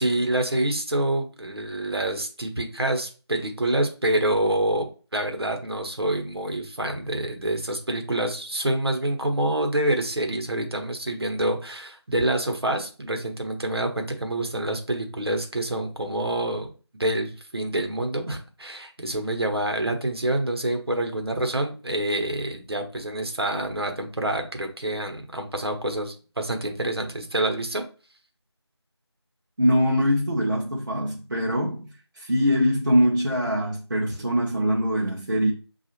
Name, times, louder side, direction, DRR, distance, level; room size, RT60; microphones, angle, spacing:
voice 1, 0.0-4.9 5.1-16.7 17.0-27.8, right 1 dB, 65° right, 0.9 m, -27 dB
voice 2, 29.6-31.9 32.1-35.5, equal, 45° right, 0.6 m, -23 dB
5.9 x 2.4 x 2.9 m
figure-of-eight pair, 170°, 14 cm